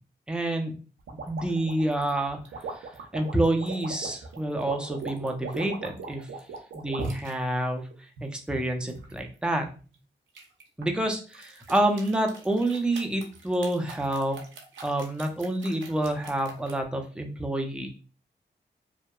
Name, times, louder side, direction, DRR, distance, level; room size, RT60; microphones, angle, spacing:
voice 1, 0.3-0.7 1.3-2.4 2.7-2.9 3.1-6.3 6.8-7.9 8.2-9.7 10.8-14.4 14.8-17.9, right 1 dB, 5° right, 3 dB, 0.5 m, -28 dB
sound 1, 1.1-7.3 7.9-9.2 10.3-10.9 11.3-16.8, right 4 dB, 85° right, 0.5 m, -39 dB
2.7 x 2.2 x 2.2 m, 0.36 s
cardioid pair, 45°, 19 cm